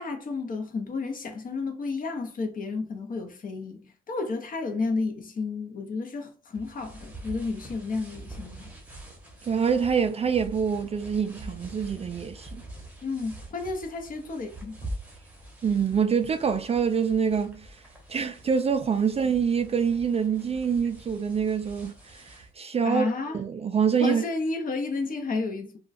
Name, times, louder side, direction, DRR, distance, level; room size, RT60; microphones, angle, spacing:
voice 1, 0.0-8.7 13.0-14.8 22.8-23.4 24.0-25.8, left 3 dB, 45° left, 0.8 m, -31 dB
sound 1, 6.5-22.5, right 1 dB, 5° right, 0.9 m, -44 dB
voice 2, 9.5-12.6 15.6-17.8 18.1-23.1 23.3-24.2, right 6 dB, 30° right, 0.3 m, -26 dB
2.3 x 2.2 x 3.9 m
cardioid pair, 90°, 20 cm